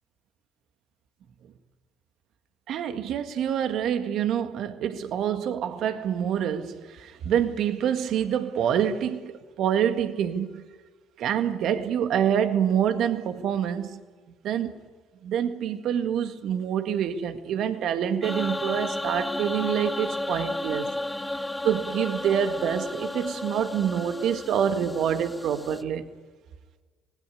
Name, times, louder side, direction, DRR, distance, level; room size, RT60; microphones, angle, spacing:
voice 1, 2.7-10.6 11.2-14.0 14.4-14.7 15.2-20.9 21.6-26.1, right 9 dB, 60° right, 1.9 m, -26 dB
sound 1, 18.2-25.8, left 1 dB, 10° left, 1.3 m, -33 dB
25.5 x 19.5 x 9.8 m
hypercardioid pair, 60°, 0 cm